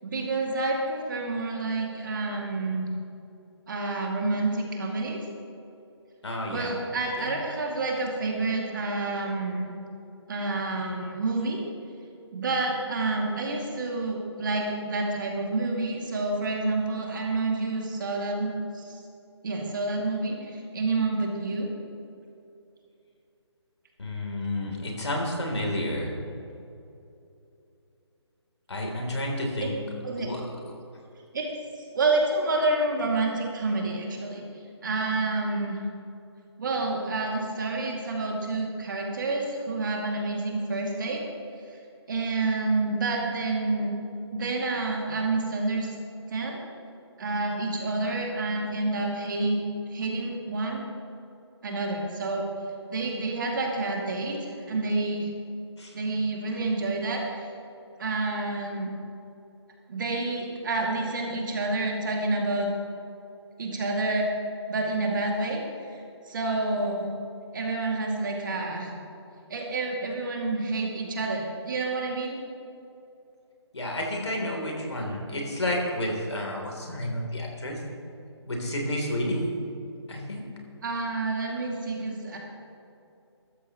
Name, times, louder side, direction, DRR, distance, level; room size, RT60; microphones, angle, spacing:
voice 1, 0.0-2.9 3.7-5.2 6.5-9.7 10.3-11.6 12.3-19.0 19.4-21.7 29.6-29.7 30.0-30.3 31.3-31.5 31.9-34.4 34.8-35.8 36.6-41.2 42.1-43.9 44.3-45.9 46.3-46.6 47.2-49.6 49.9-50.8 51.6-52.5 52.9-55.3 55.9-57.5 58.0-58.9 59.9-62.7 63.6-64.3 64.7-65.6 66.3-67.1 67.5-68.9 69.5-72.4 80.8-82.4, right 2 dB, 45° right, 0 dB, 2.3 m, -28 dB
voice 2, 6.2-6.8 7.2-7.3 24.0-26.2 28.7-29.7 30.2-30.4 55.8-55.9 73.7-77.8 78.4-79.5 80.1-80.5, left 1 dB, 70° left, 0 dB, 3.2 m, -30 dB
14.5 x 13.0 x 3.0 m, 2.7 s
figure-of-eight pair, 155°, 15 cm